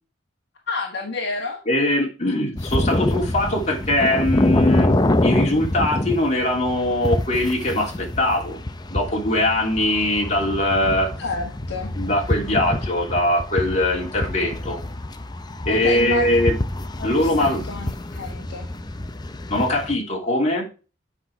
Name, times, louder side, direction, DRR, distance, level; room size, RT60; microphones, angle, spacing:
voice 1, 0.7-1.6 11.2-11.9 15.7-16.4 17.0-18.7, left 3 dB, 60° left, 1 dB, 1.5 m, -29 dB
voice 2, 1.7-4.9 5.2-8.6 8.9-11.1 12.0-14.8 15.6-16.5 17.0-17.6 19.5-20.7, left 1 dB, 35° left, -1 dB, 3.1 m, -21 dB
sound 1, 2.6-20.0, left 1 dB, 20° left, 0.6 m, -26 dB
8.2 x 5.6 x 4.8 m, 0.34 s
head